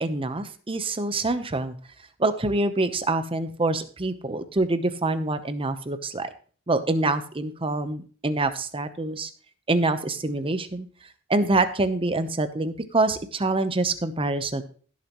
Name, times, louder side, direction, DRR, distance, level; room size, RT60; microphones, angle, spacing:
voice 1, 0.0-1.7 2.2-6.3 6.7-9.3 9.7-10.9 11.3-14.6, right 2 dB, 25° right, 10 dB, 0.9 m, -25 dB
16.5 x 7.1 x 3.0 m, 0.42 s
head